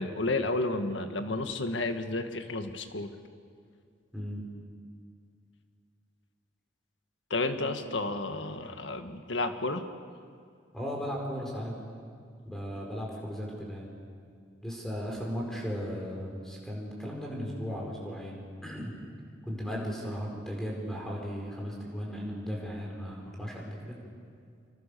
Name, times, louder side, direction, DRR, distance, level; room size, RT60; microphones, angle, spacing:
voice 1, 0.0-3.1 7.3-9.8, left 2 dB, 80° left, 7 dB, 1.7 m, -31 dB
voice 2, 4.1-4.4 7.6-7.7 10.7-11.7 12.5-13.9 14.6-18.9 19.5-24.0, equal, 5° left, -2 dB, 5.1 m, -36 dB
27.0 x 24.0 x 6.9 m, 2.3 s
head